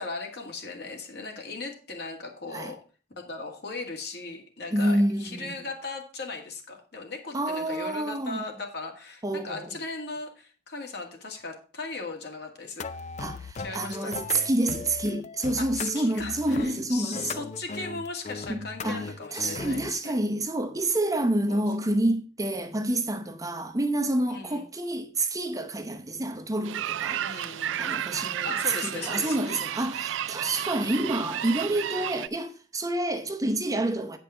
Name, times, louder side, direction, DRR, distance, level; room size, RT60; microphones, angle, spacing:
voice 1, 0.0-2.8 3.2-12.9 13.6-14.5 15.6-20.1 21.5-21.6 22.6-22.7 24.3-24.6 27.1-27.9 28.4-29.6, left 3 dB, 60° left, 2.0 m, -38 dB
voice 2, 4.7-5.7 7.3-8.4 9.2-9.7 13.2-17.5 18.5-34.2, right 1 dB, 20° right, 0.7 m, -28 dB
sound 1, 12.8-19.9, left 4 dB, 40° left, 0.4 m, -38 dB
sound 2, 26.6-32.3, right 10 dB, 85° right, 0.4 m, -32 dB
9.1 x 5.3 x 5.6 m
head